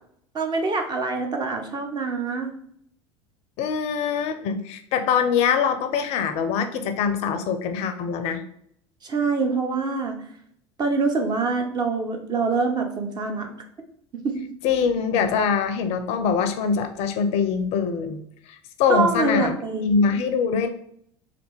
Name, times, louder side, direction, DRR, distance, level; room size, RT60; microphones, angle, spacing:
voice 1, 0.3-2.5 9.0-10.2 10.8-13.5 14.2-14.4 18.9-19.9, right 4 dB, 30° right, 3 dB, 0.7 m, -25 dB
voice 2, 3.6-8.4 14.6-18.2 18.5-19.5 19.8-20.7, left 6 dB, 45° left, 8 dB, 0.4 m, -23 dB
3.2 x 2.5 x 3.1 m, 0.67 s
figure-of-eight pair, 75°, 15 cm